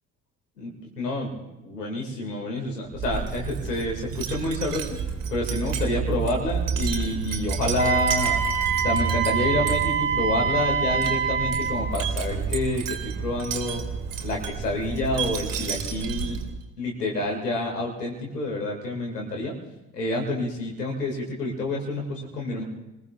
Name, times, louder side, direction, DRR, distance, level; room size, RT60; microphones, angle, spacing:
voice 1, 0.6-1.3 1.6-5.0 5.3-8.4 8.8-13.8 14.2-16.4 16.8-19.6 19.9-22.6, left 2 dB, 80° left, -1 dB, 2.4 m, -28 dB
Wind chime, 2.9-16.6, right 6 dB, 45° right, 2.3 m, -30 dB
Wind instrument woodwind instrument, 7.8-11.9, right 7 dB, 15° right, 3.3 m, -25 dB
28.5 x 20.5 x 2.4 m, 0.95 s
figure-of-eight pair, 55°, 47 cm